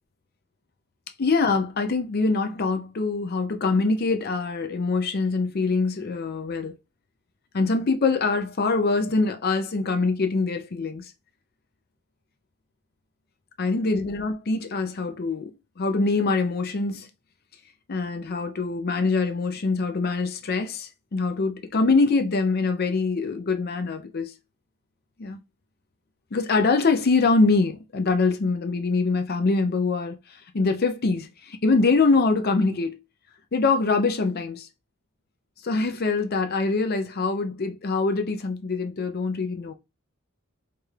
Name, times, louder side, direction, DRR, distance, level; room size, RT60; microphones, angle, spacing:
voice 1, 1.2-6.7 7.5-11.1 13.6-17.1 17.9-24.3 25.2-25.4 26.3-33.0 33.5-34.7 35.6-39.7, left 3 dB, 50° left, 0.5 m, -24 dB
4.7 x 3.1 x 2.4 m
head